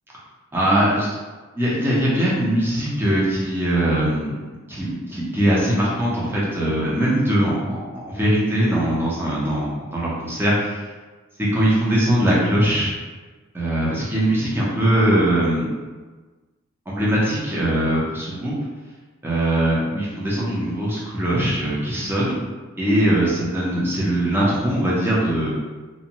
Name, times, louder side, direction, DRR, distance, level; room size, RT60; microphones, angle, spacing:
voice 1, 0.5-1.1 1.6-7.8 8.1-10.8 11.4-12.9 13.5-15.7 16.9-18.5 19.2-22.3 22.8-25.5, right 1 dB, 10° right, -7 dB, 0.6 m, -21 dB
2.6 x 2.2 x 2.9 m, 1.3 s
head